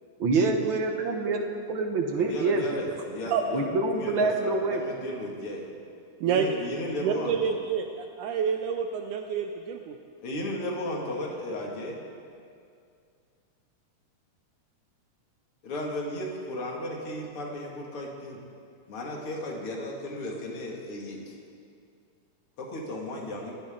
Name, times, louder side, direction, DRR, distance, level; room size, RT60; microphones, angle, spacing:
voice 1, 0.2-2.6 3.5-4.8, right 3 dB, 60° right, 3 dB, 1.3 m, -26 dB
voice 2, 2.2-5.7 6.2-7.5 10.2-12.0 15.6-18.4 18.9-21.4 22.6-23.5, left 1 dB, 45° left, -1 dB, 2.9 m, -35 dB
voice 3, 7.0-9.9, right 7 dB, 75° right, 4 dB, 2.1 m, -28 dB
27.5 x 13.0 x 3.9 m, 2.3 s
omnidirectional pair, 3.8 m